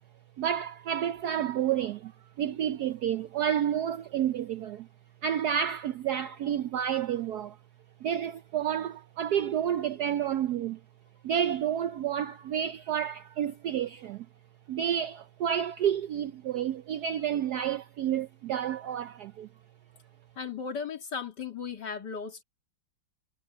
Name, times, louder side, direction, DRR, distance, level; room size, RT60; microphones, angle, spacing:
voice 1, 0.4-2.1 2.4-4.9 5.2-7.6 8.0-10.8 11.2-14.3 14.7-19.5, right 9 dB, 70° right, 1.0 m, -30 dB
voice 2, 20.4-22.4, left 6 dB, 55° left, 3.2 m, -36 dB
omnidirectional pair, 2.2 m